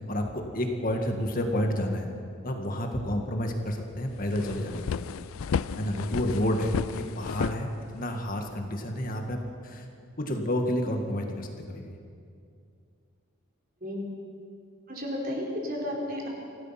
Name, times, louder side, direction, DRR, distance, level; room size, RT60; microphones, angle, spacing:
voice 1, 0.0-2.1 2.4-5.1 5.8-9.9 10.2-12.0, left 1 dB, 40° left, 3 dB, 1.8 m, -30 dB
sound 1, 3.7-3.8 4.1-8.3, left 6 dB, 75° left, 0.4 m, -33 dB
voice 2, 13.8-14.1 14.9-16.3, left 1 dB, 40° right, -2 dB, 4.5 m, -33 dB
26.0 x 17.0 x 5.9 m, 2.3 s
head